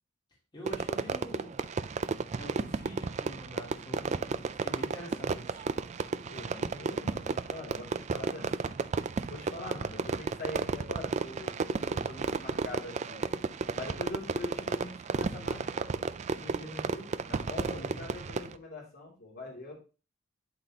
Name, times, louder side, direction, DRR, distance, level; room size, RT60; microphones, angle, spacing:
voice 1, 0.5-1.6 2.4-5.7 16.4-17.1 17.6-18.1, equal, 25° left, -5 dB, 2.8 m, -45 dB
Fireworks, 0.7-18.6, right 4 dB, 35° right, 0.3 m, -33 dB
voice 2, 6.3-8.8 9.3-13.2 13.7-15.9 17.3-19.7, left 2 dB, 55° left, -3 dB, 2.9 m, -43 dB
11.5 x 4.1 x 2.9 m, 0.35 s
head